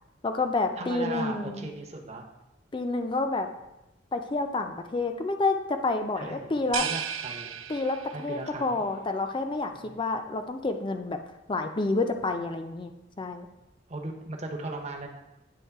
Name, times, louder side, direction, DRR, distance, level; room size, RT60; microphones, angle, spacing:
voice 1, 0.2-1.7 2.7-3.5 4.1-6.9 7.7-11.2 11.5-12.9 13.2-13.5, left 3 dB, 25° left, 6 dB, 0.4 m, -29 dB
voice 2, 0.8-2.3 6.2-6.5 6.8-7.6 8.1-8.8 9.7-10.0 13.9-15.1, right 2 dB, 35° right, 2 dB, 0.7 m, -37 dB
sound 1, 6.7-8.4, right 9 dB, 90° right, 0.4 m, -34 dB
8.7 x 3.1 x 4.6 m, 0.96 s
head